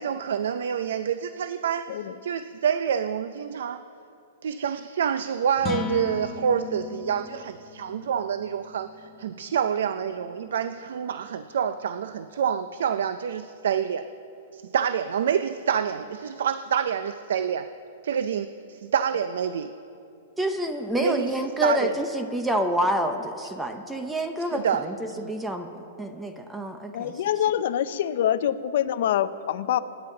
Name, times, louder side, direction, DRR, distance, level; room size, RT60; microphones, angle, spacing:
voice 1, 0.0-3.8 4.4-14.1 14.5-17.7 18.0-19.7 21.0-21.3 21.6-21.9 24.5-24.8 25.2-25.3, right 8 dB, 80° right, 11 dB, 0.5 m, -27 dB
sound 1, 5.5-11.9, left 6 dB, 15° left, 0.9 m, -38 dB
voice 2, 20.4-27.1, equal, 5° right, 6 dB, 0.7 m, -28 dB
voice 3, 26.9-29.8, left 10 dB, 60° left, 12 dB, 0.6 m, -25 dB
25.0 x 10.0 x 3.8 m, 2.6 s
hypercardioid pair, 160°, 0 cm